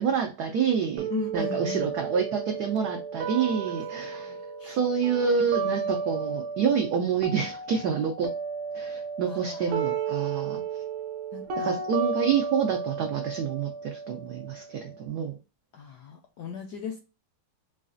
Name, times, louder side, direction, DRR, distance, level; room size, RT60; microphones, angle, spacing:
voice 1, 0.0-4.3 4.6-8.3 8.7-10.6 11.5-15.4, right 6 dB, 85° right, 3 dB, 0.8 m, -28 dB
sound 1, 1.0-7.0 7.2-15.0, right 5 dB, 70° right, 1.2 m, -33 dB
voice 2, 1.1-2.0 4.2-4.8 5.4-5.5 9.2-9.9 11.3-11.7 15.7-17.0, left 5 dB, 80° left, 3 dB, 0.9 m, -38 dB
4.9 x 2.4 x 2.5 m, 0.31 s
omnidirectional pair, 2.3 m